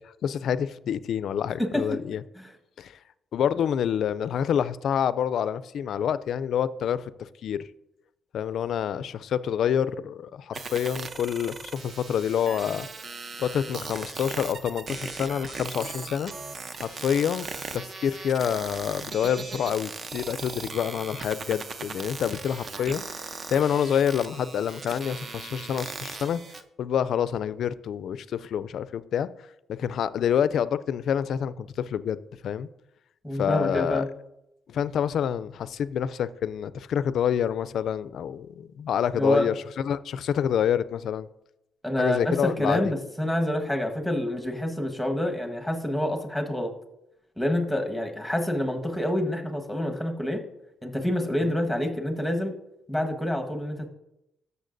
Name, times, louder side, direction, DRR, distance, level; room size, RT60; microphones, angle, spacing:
voice 1, 0.2-2.2 2.8-2.9 3.3-7.1 7.4-7.6 8.3-12.9 13.4-16.3 16.8-17.5 17.7-23.0 23.5-26.4 26.8-29.3 29.7-32.7 33.4-34.0 34.7-41.3 42.0-42.8 51.4-51.5, left 8 dB, 70° left, 0.3 m, -27 dB
voice 2, 1.6-2.0 2.3-2.5 33.2-34.1 39.1-39.5 41.8-46.7 47.4-50.4 50.8-52.5 52.9-53.9, left 1 dB, ahead, 1.4 m, -27 dB
sound 1, 10.5-26.6, right 4 dB, 40° right, 0.7 m, -38 dB
13.5 x 6.8 x 2.6 m
cardioid pair, 90°, 0 cm